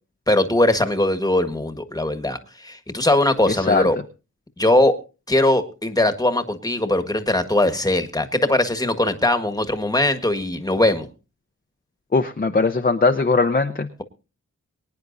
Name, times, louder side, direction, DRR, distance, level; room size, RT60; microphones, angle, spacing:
voice 1, 0.3-4.0 4.6-4.9 5.3-11.1, left 1 dB, 10° left, 8 dB, 1.5 m, -20 dB
voice 2, 12.1-13.9, left 3 dB, 30° left, 5 dB, 0.8 m, -19 dB
24.0 x 9.7 x 2.7 m, 0.32 s
wide cardioid pair, 85°, 30 cm